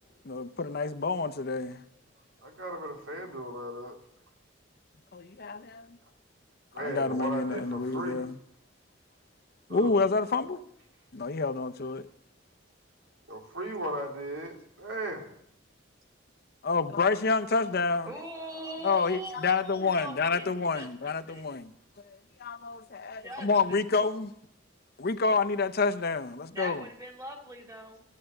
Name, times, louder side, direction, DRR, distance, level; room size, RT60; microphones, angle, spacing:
voice 1, 0.2-1.8 5.1-5.9 6.8-8.4 9.7-10.6 11.1-12.0 16.6-18.1 18.8-21.7 22.1-24.3 25.0-26.8, left 4 dB, 55° left, 0.7 m, -28 dB
voice 2, 2.4-4.0 6.7-8.3 9.7-10.0 13.3-15.3, right 1 dB, 85° right, 3.2 m, -36 dB
voice 3, 18.0-21.4 23.2-24.1 26.5-28.0, right 1 dB, 15° right, 2.3 m, -42 dB
14.5 x 8.4 x 7.7 m
head